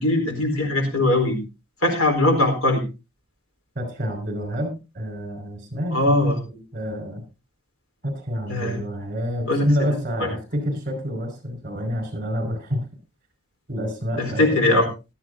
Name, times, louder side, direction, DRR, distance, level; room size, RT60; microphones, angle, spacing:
voice 1, 0.0-1.4 1.8-2.8 5.9-6.4 8.5-8.8 9.5-9.7 14.2-14.9, left 1 dB, 90° left, 4 dB, 4.2 m, -20 dB
voice 2, 3.8-7.2 8.0-12.8 13.7-14.6, equal, 40° right, 6 dB, 5.3 m, -28 dB
17.0 x 13.0 x 2.7 m, 0.28 s
head